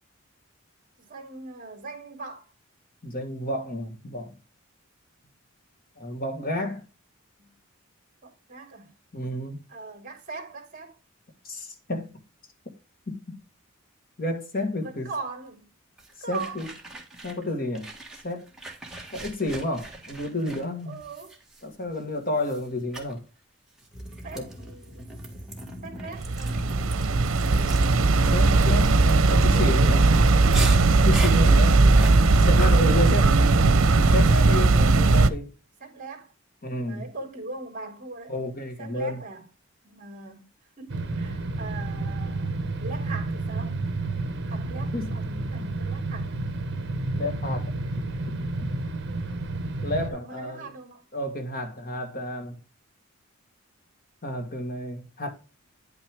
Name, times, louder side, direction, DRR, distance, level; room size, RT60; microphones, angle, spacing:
voice 1, 1.0-2.5 7.4-7.6 8.2-8.9 9.7-11.0 14.8-15.7 16.2-16.7 20.9-21.3 24.2-25.1 25.8-26.7 31.1-32.0 32.8-33.0 33.2-33.6 35.8-36.3 36.8-38.3 38.8-39.5 39.8-40.4 40.8-42.5 42.8-43.8 44.4-46.7 50.1-51.0, right 3 dB, 40° right, 2.6 m, -40 dB
voice 2, 3.0-4.3 6.0-6.8 9.1-9.6 11.4-12.1 13.1-13.4 14.2-15.1 16.3-16.7 17.2-17.9 18.2-18.5 19.1-21.0 21.6-23.2 24.3-24.5 28.3-30.1 31.0-31.8 32.4-33.3 34.1-35.5 36.6-37.1 38.3-39.2 44.9-45.1 47.1-47.7 48.6-48.7 49.8-50.7 51.1-52.6 54.2-55.3, left 1 dB, 45° left, 1.5 m, -30 dB
sound 1, 16.0-17.5 17.7-22.0 22.4-22.7 22.9-23.1 23.8-32.7, right 2 dB, ahead, 1.8 m, -40 dB
sound 2, 26.2-35.3, right 3 dB, 80° right, 0.8 m, -18 dB
sound 3, 40.9-50.1, right 2 dB, 55° right, 1.1 m, -30 dB
9.9 x 5.9 x 3.5 m
head